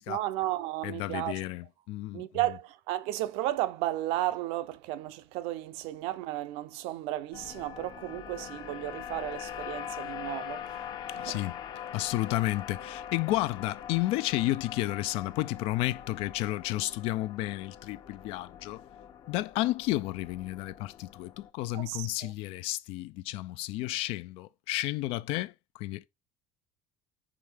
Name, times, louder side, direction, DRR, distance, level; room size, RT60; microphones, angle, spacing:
voice 1, 0.1-1.4 2.1-11.4 21.7-22.3, right 15 dB, 75° right, 0.7 m, -34 dB
voice 2, 0.8-2.2 11.1-11.6 11.9-18.8 19.3-26.1, left 17 dB, 70° left, 0.5 m, -32 dB
sound 1, 7.3-21.5, left 9 dB, 45° left, 0.8 m, -43 dB
4.9 x 3.6 x 5.7 m
cardioid pair, 130°, 10 cm